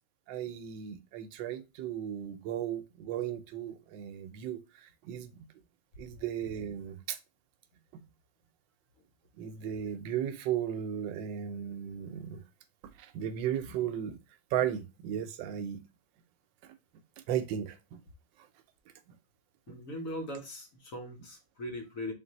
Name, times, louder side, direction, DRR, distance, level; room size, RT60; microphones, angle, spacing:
voice 1, 0.3-5.3 6.0-7.2 7.9-8.0 9.4-12.4 13.0-14.2 14.5-15.8 17.3-18.0, right 10 dB, 80° right, 1.3 m, -35 dB
voice 2, 19.7-22.1, left 1 dB, 55° left, 1.0 m, -40 dB
3.8 x 2.6 x 3.9 m
omnidirectional pair, 2.0 m